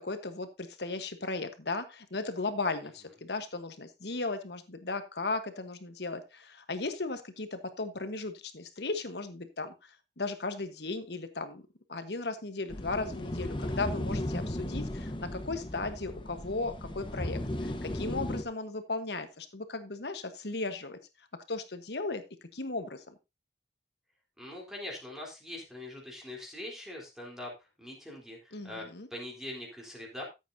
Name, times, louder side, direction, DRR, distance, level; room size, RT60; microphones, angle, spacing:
voice 1, 0.0-11.6 11.9-21.0 21.5-22.2 22.5-23.2 28.5-29.1, left 3 dB, 65° left, 9 dB, 1.3 m, -36 dB
sound 1, 12.7-18.4, left 1 dB, 25° left, 1.0 m, -36 dB
voice 2, 24.4-27.5 27.8-30.2, left 1 dB, 5° right, -2 dB, 3.7 m, -42 dB
14.0 x 8.2 x 2.8 m, 0.24 s
head